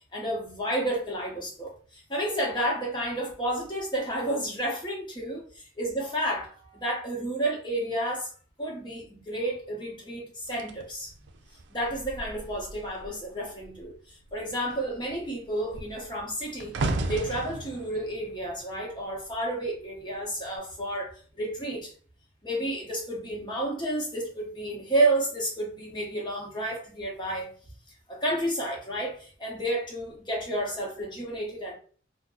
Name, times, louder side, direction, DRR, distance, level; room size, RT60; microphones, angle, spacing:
voice 1, 0.1-5.5 5.8-8.3 8.6-11.1 11.7-21.9 22.4-27.5 28.1-31.8, right 1 dB, 25° left, 1.0 m, -31 dB
sound 1, 10.5-13.2 13.5-13.9 14.2-19.5 20.3-20.5, right 2 dB, 85° right, 0.4 m, -36 dB
2.7 x 2.2 x 3.7 m
head